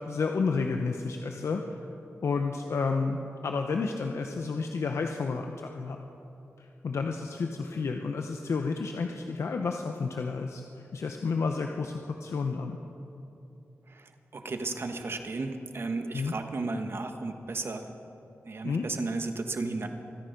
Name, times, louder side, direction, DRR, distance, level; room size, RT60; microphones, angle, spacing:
voice 1, 0.0-1.8 2.2-3.2 3.4-6.0 6.6-12.8 16.1-16.3 18.6-18.8, left 4 dB, 75° left, 4 dB, 0.8 m, -31 dB
voice 2, 13.9-17.9 18.4-19.9, right 3 dB, 55° right, 6 dB, 1.3 m, -34 dB
24.5 x 9.9 x 5.3 m, 2.9 s
cardioid pair, 70°, 5 cm